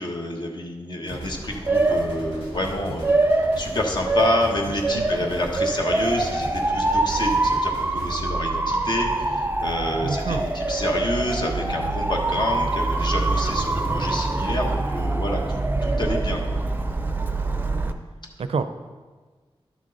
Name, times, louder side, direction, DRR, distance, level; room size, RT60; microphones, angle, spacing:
voice 1, 0.0-3.2 3.6-16.6, left 1 dB, 50° left, 1 dB, 1.3 m, -28 dB
sound 1, 1.1-8.1, right 1 dB, 85° left, 3.0 m, -38 dB
Motor vehicle (road) / Siren, 1.1-17.9, right 2 dB, 20° right, 0.5 m, -25 dB
voice 2, 10.0-10.5 18.4-18.6, right 4 dB, 75° right, 10 dB, 0.5 m, -27 dB
11.5 x 6.3 x 4.0 m, 1.4 s
wide cardioid pair, 125°, 10 cm